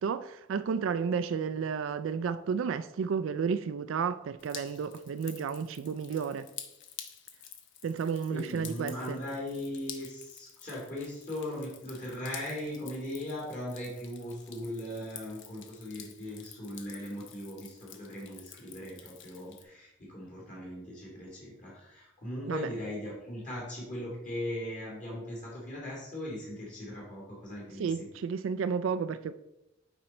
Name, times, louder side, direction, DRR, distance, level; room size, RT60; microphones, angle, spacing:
voice 1, 0.0-6.5 7.8-9.2 22.5-22.7 27.8-29.3, right 6 dB, 70° right, 0.3 m, -32 dB
Drip, 4.4-19.6, left 9 dB, 65° left, 0.9 m, -49 dB
voice 2, 8.3-28.1, left 1 dB, 40° left, 2.6 m, -39 dB
8.7 x 5.2 x 4.3 m
head